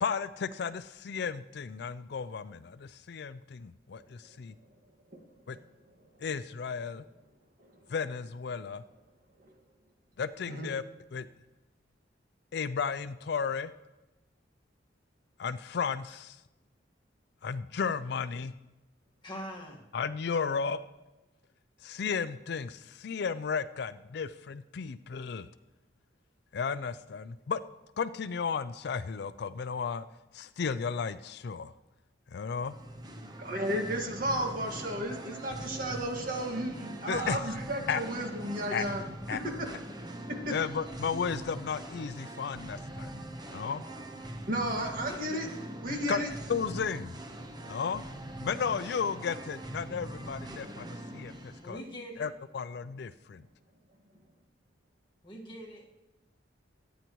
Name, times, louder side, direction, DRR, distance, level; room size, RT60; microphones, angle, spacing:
voice 1, 0.0-4.5 5.5-5.6 6.2-7.0 7.9-8.8 10.2-10.8 11.1-11.3 12.5-13.7 15.4-16.4 17.4-18.5 19.9-20.8 21.8-25.5 26.5-27.6 28.0-30.1 30.3-31.7 32.3-32.7 37.1-37.4 37.9-38.0 38.7-38.8 39.3-39.4 40.5-43.2 43.5-43.8 45.9-46.2 46.5-47.1 47.7-48.0 48.4-51.8 52.2-53.4, left 6 dB, 60° left, 13 dB, 0.4 m, -34 dB
voice 2, 19.2-19.9 51.6-52.3 55.2-55.9, equal, 25° left, -1 dB, 1.6 m, -43 dB
Singing, 32.5-51.7, right 1 dB, 20° right, 0.9 m, -42 dB
voice 3, 33.4-39.0 39.3-39.7 40.4-40.5 44.5-45.5 45.8-46.3, right 1 dB, 50° right, 2 dB, 1.8 m, -33 dB
24.5 x 9.2 x 3.0 m, 1.0 s
head